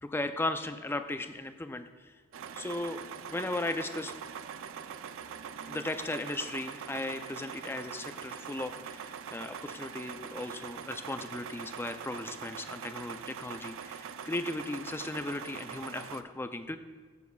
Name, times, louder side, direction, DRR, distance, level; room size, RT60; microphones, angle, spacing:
voice 1, 0.0-2.1 2.6-4.1 5.7-16.8, left 2 dB, 10° left, 9 dB, 0.3 m, -36 dB
sound 1, 2.3-16.2, right 7 dB, 65° right, 0.4 m, -43 dB
15.0 x 7.1 x 2.3 m, 1.5 s
head